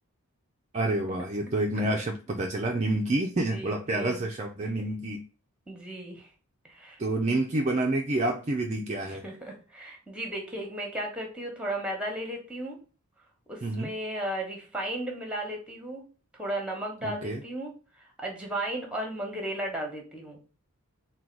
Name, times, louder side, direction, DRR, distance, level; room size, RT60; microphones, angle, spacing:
voice 1, 0.7-5.2 7.0-9.2 13.6-13.9 17.0-17.4, right 2 dB, 30° right, 1 dB, 0.4 m, -28 dB
voice 2, 3.2-4.3 4.6-4.7 5.7-6.3 6.6-7.0 9.1-12.8 13.5-16.0 16.4-17.7 18.0-20.4, right 1 dB, 5° right, 1 dB, 1.0 m, -35 dB
3.8 x 2.2 x 4.4 m, 0.36 s
head